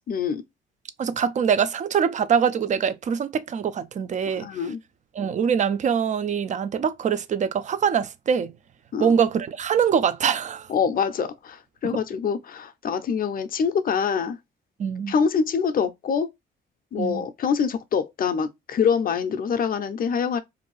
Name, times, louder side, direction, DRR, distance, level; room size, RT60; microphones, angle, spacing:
voice 1, 0.1-0.4 4.4-4.8 8.9-9.1 10.7-14.4 15.1-16.3 16.9-20.4, left 6 dB, 45° left, 0.5 m, -25 dB
voice 2, 1.0-4.5 5.1-8.5 9.0-10.7 14.8-15.1 17.0-17.3, right 7 dB, 40° right, 0.4 m, -23 dB
2.6 x 2.2 x 3.0 m
cardioid pair, 90°, 20 cm